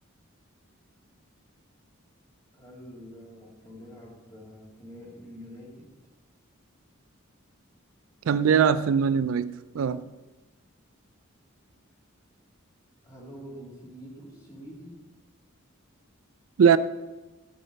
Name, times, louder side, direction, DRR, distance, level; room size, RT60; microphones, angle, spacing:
voice 1, 2.5-5.9 13.0-14.9, equal, 20° left, 4.0 m, -46 dB
voice 2, 8.3-10.0 16.6-16.8, right 7 dB, 75° right, 0.4 m, -21 dB
14.5 x 7.5 x 3.4 m
head